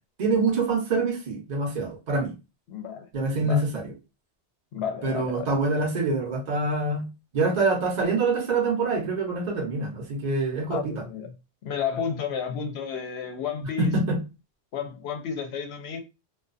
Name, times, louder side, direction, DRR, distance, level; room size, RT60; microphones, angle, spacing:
voice 1, 0.2-2.3 3.1-3.9 5.0-7.1 7.3-11.0 13.8-14.2, right 3 dB, 45° right, 0.8 m, -25 dB
voice 2, 2.7-3.6 4.7-5.5 10.7-11.3 11.6-13.9 14.7-16.0, left 7 dB, 70° left, 0.8 m, -32 dB
2.4 x 2.3 x 2.5 m
omnidirectional pair, 1.1 m